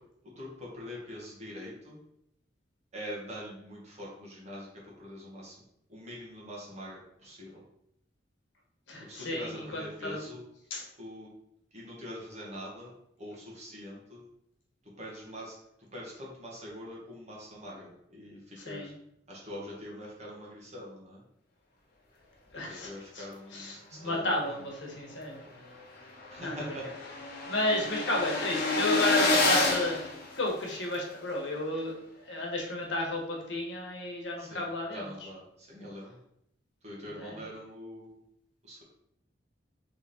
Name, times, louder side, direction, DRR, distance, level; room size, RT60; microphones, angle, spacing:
voice 1, 0.3-2.0 2.9-5.6 5.9-7.6 9.0-10.5 11.0-11.3 11.7-12.9 13.2-14.2 14.8-15.5 15.9-18.9 19.3-21.2 22.5-24.6 26.3-27.4 34.4-36.2 36.8-38.2 38.6-38.8, equal, 35° right, -4 dB, 1.5 m, -44 dB
voice 2, 8.9-10.2 10.7-10.8 18.7-18.9 22.5-23.2 23.5-25.4 26.4-26.7 27.5-30.0 30.4-31.9 32.3-35.0 37.2-37.4, left 1 dB, 75° left, 0 dB, 1.2 m, -32 dB
sound 1, 25.4-25.5 25.8-25.9 26.1-30.9, left 2 dB, 55° left, 1.0 m, -29 dB
3.5 x 3.5 x 4.2 m, 0.76 s
head